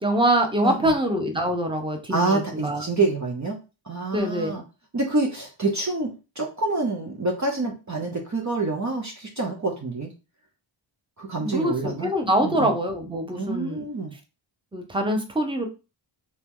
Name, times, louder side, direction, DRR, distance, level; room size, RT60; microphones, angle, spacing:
voice 1, 0.0-2.8 4.1-4.5 11.4-13.8 14.7-15.7, right 1 dB, 10° right, 3 dB, 1.0 m, -24 dB
voice 2, 0.6-0.9 2.1-3.6 3.9-4.6 4.9-10.1 11.2-12.1 12.4-12.7 13.3-14.1, right 3 dB, 35° right, 0 dB, 0.8 m, -27 dB
3.0 x 2.8 x 3.7 m, 0.30 s
cardioid pair, 50°, 49 cm